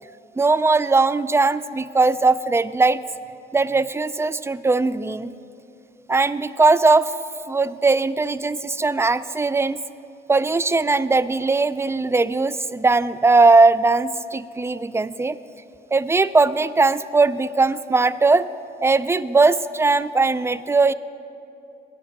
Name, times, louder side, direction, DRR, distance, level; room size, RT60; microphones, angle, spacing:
voice 1, 0.4-3.0 3.5-5.3 6.1-7.1 7.5-9.8 10.3-15.4 15.9-18.5 18.8-20.9, right 3 dB, 15° right, 16 dB, 0.3 m, -19 dB
14.5 x 9.8 x 5.2 m, 2.8 s
cardioid pair, 90°, 20 cm